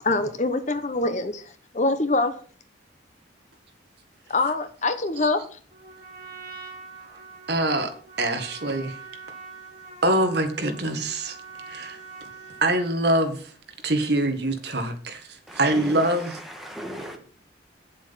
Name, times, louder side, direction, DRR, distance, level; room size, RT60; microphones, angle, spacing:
voice 1, 0.0-2.3 4.3-5.4, left 2 dB, 40° left, 0.9 m, -24 dB
Trumpet, 5.7-13.0, right 4 dB, 20° right, 4.2 m, -44 dB
voice 2, 7.5-9.0 10.0-11.4 11.7-12.0 12.6-13.5 13.8-16.3, right 1 dB, 55° right, 1.6 m, -24 dB
voice 3, 15.5-17.2, equal, ahead, 1.6 m, -37 dB
8.9 x 7.4 x 5.7 m
head